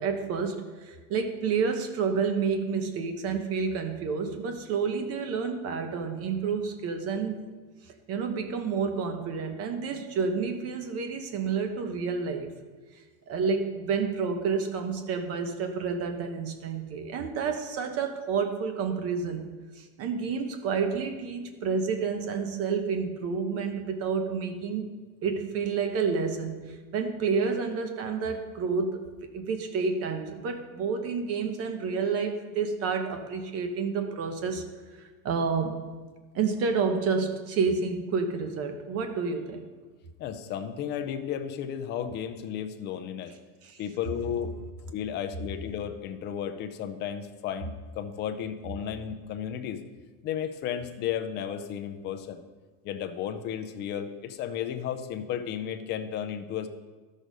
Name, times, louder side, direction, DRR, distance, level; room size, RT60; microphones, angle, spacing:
voice 1, 0.0-7.4 8.1-12.5 13.3-19.4 19.8-24.9 25.2-34.6 35.2-35.8 36.3-39.7 43.6-43.8, right 5 dB, 35° right, 6 dB, 1.0 m, -29 dB
voice 2, 40.2-43.3 43.8-44.5 44.9-49.8 50.2-52.4 52.8-56.7, left 9 dB, 25° left, 8 dB, 0.4 m, -33 dB
12.5 x 6.5 x 5.1 m, 1.4 s
cardioid pair, 175°, 44 cm